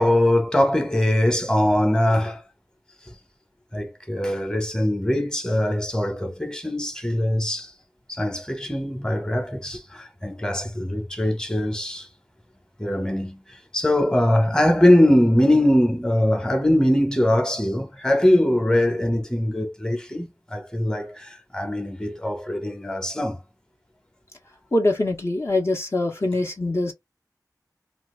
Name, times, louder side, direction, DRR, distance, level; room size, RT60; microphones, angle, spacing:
voice 1, 0.0-2.4 3.7-7.7 8.1-12.1 12.8-13.4 13.7-23.4, left 1 dB, 10° left, 1.0 m, -22 dB
voice 2, 24.7-26.9, left 2 dB, 40° left, 0.8 m, -23 dB
2.8 x 2.5 x 3.2 m
wide cardioid pair, 60°, 7 cm